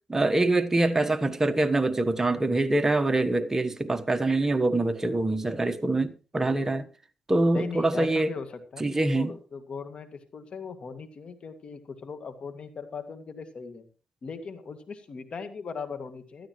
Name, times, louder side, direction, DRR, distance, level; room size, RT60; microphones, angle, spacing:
voice 1, 0.1-6.9 7.3-8.3 8.8-9.3, right 2 dB, 20° right, 1.2 m, -24 dB
voice 2, 7.5-13.9 14.2-16.5, left 5 dB, 55° left, 2.1 m, -39 dB
16.5 x 12.5 x 3.1 m
cardioid pair, 65°, 2 cm